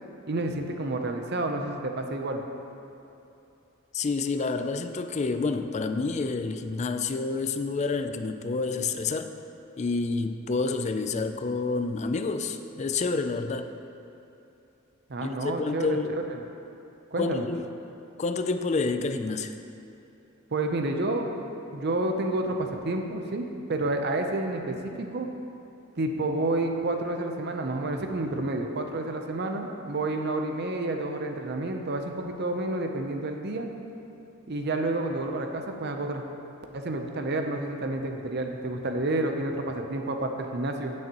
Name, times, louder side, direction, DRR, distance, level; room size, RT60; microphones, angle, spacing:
voice 1, 0.3-2.4 15.1-16.0 16.3-16.4 17.1-17.4 20.5-25.3 26.0-33.7 34.5-36.2 36.7-40.9, right 2 dB, 55° right, 4 dB, 0.7 m, -30 dB
voice 2, 3.9-9.3 9.8-13.7 15.2-16.2 17.2-17.6 18.2-19.5, left 3 dB, 35° left, 8 dB, 0.4 m, -28 dB
15.5 x 6.4 x 3.0 m, 2.8 s
head